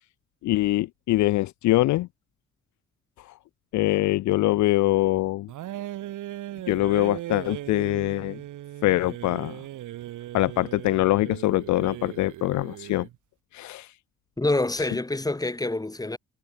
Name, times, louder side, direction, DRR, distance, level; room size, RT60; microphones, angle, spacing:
voice 1, 0.4-2.1 3.7-5.5 6.7-8.4 8.8-9.6 10.3-13.1 13.5-13.9, left 17 dB, 70° left, 0.5 m, -23 dB
sound 1, 5.5-13.2, right 14 dB, 80° right, 3.7 m, -38 dB
voice 2, 14.4-16.2, left 2 dB, 10° left, 2.3 m, -26 dB
cardioid pair, 90°, 30 cm